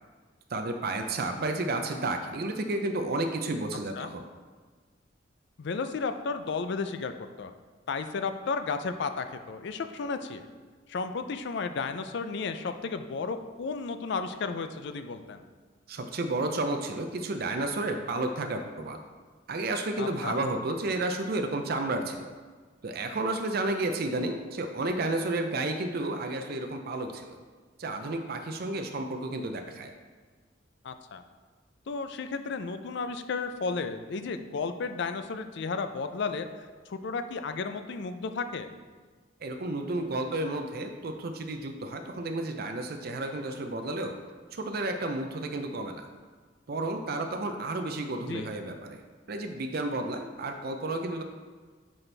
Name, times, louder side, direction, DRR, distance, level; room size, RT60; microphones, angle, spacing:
voice 1, 0.5-4.2 15.9-19.0 19.5-22.3 22.8-27.4 27.8-29.9 39.4-44.2 44.5-46.1 46.7-49.0 49.3-51.2, right 2 dB, 50° right, 5 dB, 0.5 m, -31 dB
voice 2, 5.6-7.5 7.9-10.5 10.9-15.4 20.0-20.4 30.8-31.2 31.9-38.7 48.3-48.5, left 4 dB, 60° left, 9 dB, 0.4 m, -33 dB
8.6 x 4.2 x 3.3 m, 1.4 s
head